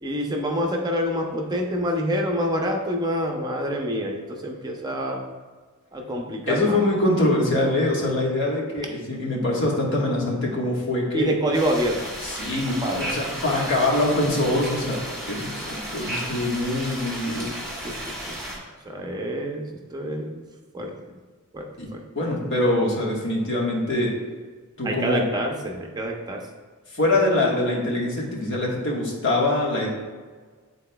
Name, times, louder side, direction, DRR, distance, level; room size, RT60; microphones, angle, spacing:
voice 1, 0.0-5.2 5.9-6.8 11.1-12.0 12.8-13.0 17.8-17.9 18.3-18.4 18.8-20.5 20.7-20.9 21.5-21.6 21.9-22.0 24.8-26.4, equal, 20° right, 1 dB, 0.6 m, -26 dB
voice 2, 6.5-11.3 12.2-17.5 21.8-24.1 24.8-25.2 26.9-29.9, left 1 dB, 55° left, -2 dB, 1.4 m, -24 dB
sound 1, 11.5-18.6, equal, ahead, 1.8 m, -34 dB
10.5 x 4.1 x 2.3 m, 1.5 s
head